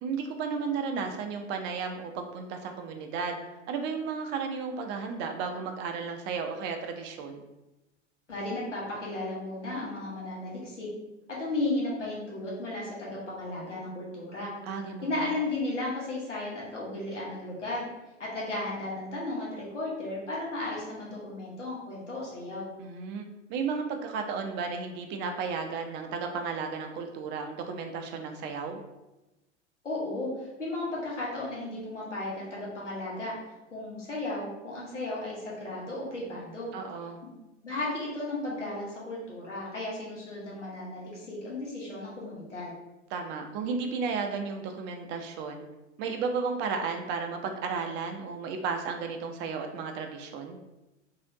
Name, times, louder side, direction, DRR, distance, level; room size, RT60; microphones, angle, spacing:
voice 1, 0.0-3.4 3.7-7.4 14.7-15.3 22.8-28.8 36.7-37.2 43.1-45.6 46.0-50.6, right 5 dB, 30° right, 5 dB, 0.4 m, -33 dB
voice 2, 8.3-10.9 11.3-14.5 15.0-17.8 18.2-22.7 29.8-33.3 33.7-36.7 37.6-42.7, left 2 dB, 85° left, -5 dB, 1.1 m, -34 dB
3.3 x 2.7 x 2.6 m, 1.0 s
figure-of-eight pair, 85°, 36 cm